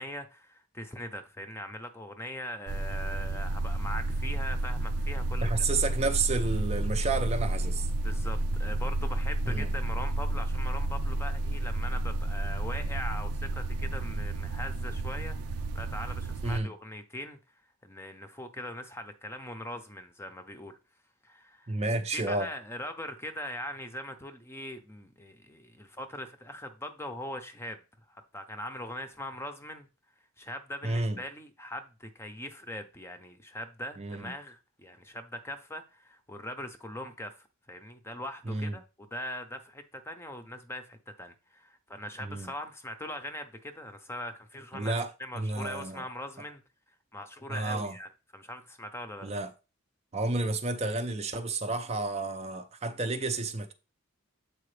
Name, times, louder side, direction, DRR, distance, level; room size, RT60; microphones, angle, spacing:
voice 1, 0.0-5.5 8.0-17.4 17.8-20.8 21.2-21.8 22.1-27.8 28.1-29.9 30.4-46.6 47.1-49.3, left 1 dB, 10° left, 0.7 m, -41 dB
sound 1, 2.7-16.6, right 2 dB, 90° right, 0.5 m, -31 dB
voice 2, 5.4-7.9 9.5-9.7 16.4-16.7 21.7-22.5 30.8-31.2 34.0-34.3 38.5-38.8 42.2-42.5 44.7-46.0 47.5-47.9 49.2-49.5 50.1-53.7, right 3 dB, 30° right, 0.5 m, -31 dB
7.8 x 4.6 x 3.2 m
head